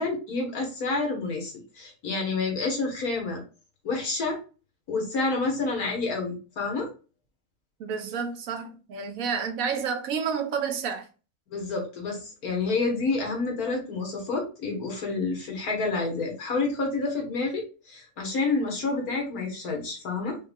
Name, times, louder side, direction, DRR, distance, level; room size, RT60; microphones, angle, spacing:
voice 1, 0.0-3.4 3.8-4.4 4.9-6.9 11.5-20.4, left 3 dB, 80° left, 1.9 m, -29 dB
voice 2, 7.8-11.1, right 6 dB, 70° right, 1.2 m, -30 dB
5.5 x 2.4 x 3.5 m
omnidirectional pair, 1.5 m